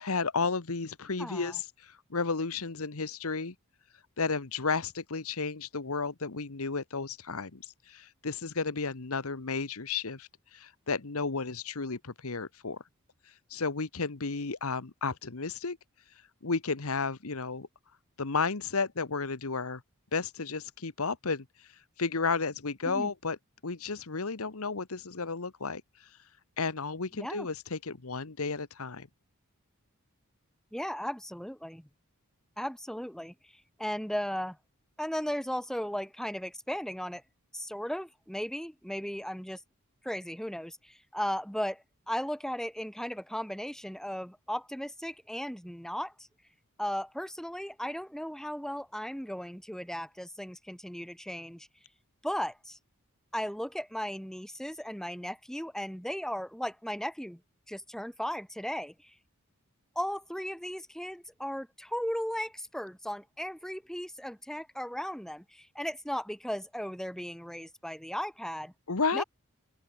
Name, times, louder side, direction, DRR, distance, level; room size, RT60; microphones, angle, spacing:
voice 1, 0.0-3.5 3.9-12.8 13.2-17.7 18.2-19.8 20.1-23.4 23.6-26.3 26.6-29.1 68.9-69.2, left 4 dB, 75° left, 1.2 m, -33 dB
voice 2, 1.2-1.6 22.8-23.1 27.2-27.5 30.7-31.9 32.6-34.6 35.0-37.2 37.5-39.6 40.0-46.1 46.8-51.7 52.2-52.8 53.3-57.4 57.7-59.1 60.0-68.7 69.1-69.2, equal, ahead, 1.8 m, -36 dB
open air
head